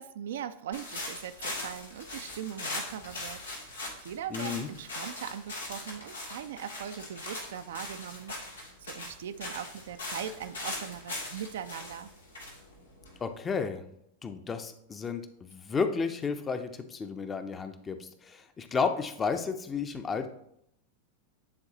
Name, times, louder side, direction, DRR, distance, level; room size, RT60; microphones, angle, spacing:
voice 1, 0.0-12.1, right 9 dB, 60° right, 10 dB, 0.3 m, -40 dB
sound 1, 0.7-13.5, left 2 dB, 80° left, 1.7 m, -40 dB
voice 2, 4.3-4.7 13.2-13.8 14.2-20.3, left 5 dB, 20° left, 8 dB, 0.6 m, -32 dB
9.6 x 3.9 x 2.8 m, 0.73 s
figure-of-eight pair, 90°, 0 cm